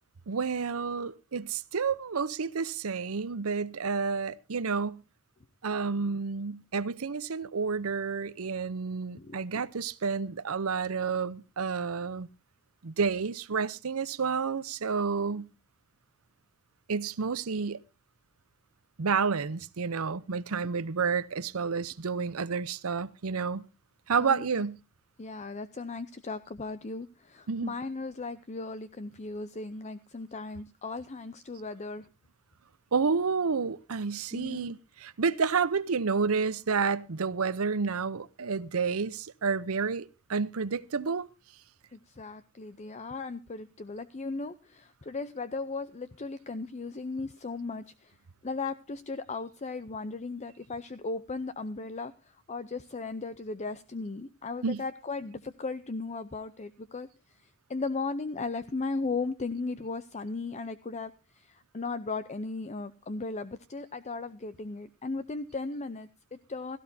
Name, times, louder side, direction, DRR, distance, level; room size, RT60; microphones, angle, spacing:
voice 1, 0.3-5.0 5.6-12.3 12.8-15.5 16.9-17.8 19.0-23.6 24.1-24.8 27.5-27.7 32.9-41.3 54.6-54.8, right 5 dB, 80° right, 0.7 m, -30 dB
voice 2, 25.2-32.0 34.3-34.7 41.9-48.1 48.4-57.1 57.7-66.8, left 3 dB, 30° left, 0.6 m, -36 dB
17.0 x 15.5 x 2.7 m
head